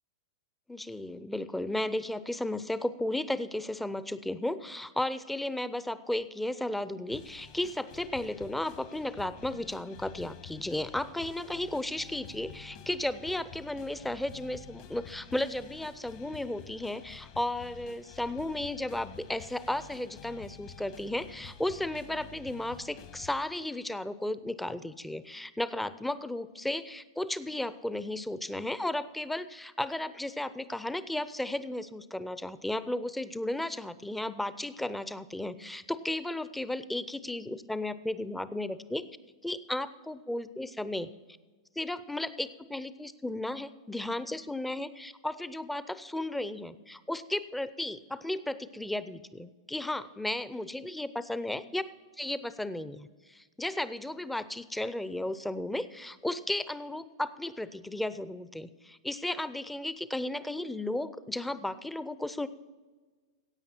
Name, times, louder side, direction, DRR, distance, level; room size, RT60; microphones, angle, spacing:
voice 1, 0.7-39.1 39.4-41.1 41.8-51.8 52.2-62.5, left 1 dB, 5° left, 14 dB, 0.6 m, -34 dB
sound 1, 7.1-23.4, left 7 dB, 55° left, 1.8 m, -50 dB
15.5 x 8.6 x 4.4 m, 1.4 s
hypercardioid pair, 110°, 3 cm